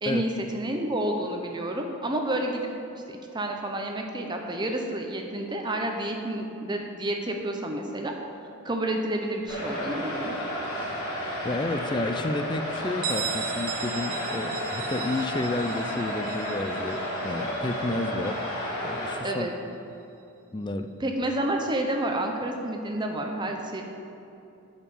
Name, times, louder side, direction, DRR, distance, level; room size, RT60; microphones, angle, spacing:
voice 1, 0.0-2.7 3.1-8.1 8.6-10.4 19.2-19.5 21.0-23.8, right 1 dB, 20° right, 2 dB, 0.7 m, -29 dB
sound 1, 9.5-19.2, equal, 85° left, 2.5 m, -32 dB
voice 2, 11.4-18.4 18.8-19.5 20.5-20.9, left 2 dB, 20° left, 8 dB, 0.4 m, -31 dB
Bell, 13.0-18.5, right 9 dB, 80° right, 0.7 m, -37 dB
8.9 x 6.6 x 7.0 m, 2.8 s
head